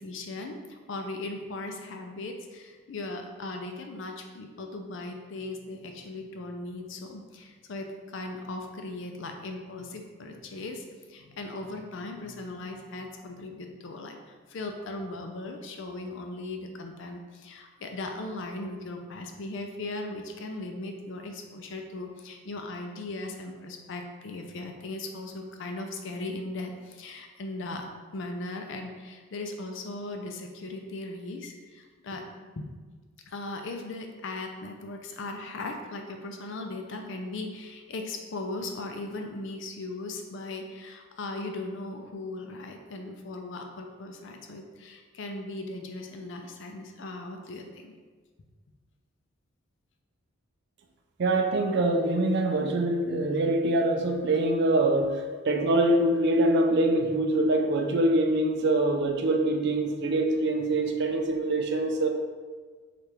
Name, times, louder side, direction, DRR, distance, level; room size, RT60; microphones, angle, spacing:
voice 1, 0.0-27.9 28.1-32.2 32.6-32.7 33.3-47.9, left 2 dB, 60° left, 4 dB, 0.5 m, -38 dB
voice 2, 51.2-62.1, right 2 dB, 55° right, 4 dB, 0.4 m, -24 dB
3.3 x 2.5 x 4.4 m, 1.5 s
head